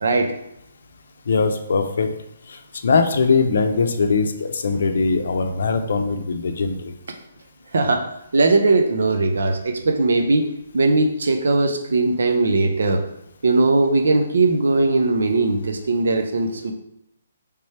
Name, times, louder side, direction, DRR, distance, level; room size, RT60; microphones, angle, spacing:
voice 1, 1.3-2.1 2.5-6.9, left 4 dB, 60° left, 7 dB, 0.5 m, -21 dB
voice 2, 7.7-8.0 8.3-10.5 10.7-13.0 13.4-16.7, right 3 dB, 75° right, 5 dB, 0.6 m, -19 dB
3.4 x 3.3 x 4.2 m, 0.79 s
hypercardioid pair, 170°, 0 cm